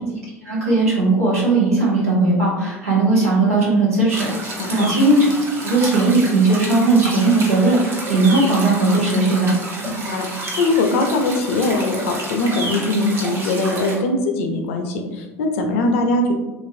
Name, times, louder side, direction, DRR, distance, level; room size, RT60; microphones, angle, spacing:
voice 1, 0.4-5.4 5.6-9.5, right 2 dB, 80° right, -6 dB, 1.1 m, -17 dB
sound 1, 4.1-14.0, right 2 dB, 30° right, 0.8 m, -30 dB
voice 2, 4.5-4.9 9.8-16.3, left 2 dB, 60° left, 4 dB, 0.5 m, -21 dB
3.0 x 2.5 x 2.6 m, 1.1 s
figure-of-eight pair, 70°, 8 cm